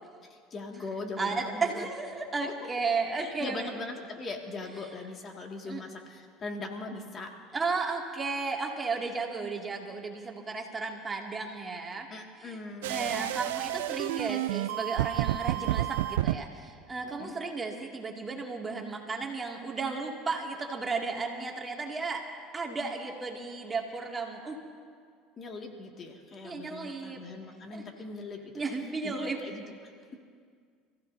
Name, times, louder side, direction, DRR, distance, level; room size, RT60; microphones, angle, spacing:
voice 1, 0.2-1.9 2.4-2.5 3.2-7.3 12.1-13.3 17.2-17.4 25.4-28.6 29.0-29.9, left 3 dB, 40° left, 2 dB, 2.1 m, -40 dB
voice 2, 1.2-3.7 5.7-5.8 7.5-12.1 12.4-12.6 12.8-22.2 22.5-24.6 26.4-27.2 27.7-27.8 28.5-29.4, right 4 dB, 25° right, 0 dB, 2.4 m, -34 dB
sound 1, 12.8-16.4, right 15 dB, 85° right, 0.4 m, -30 dB
29.5 x 15.5 x 2.8 m, 2.1 s
supercardioid pair, 85°, 0 cm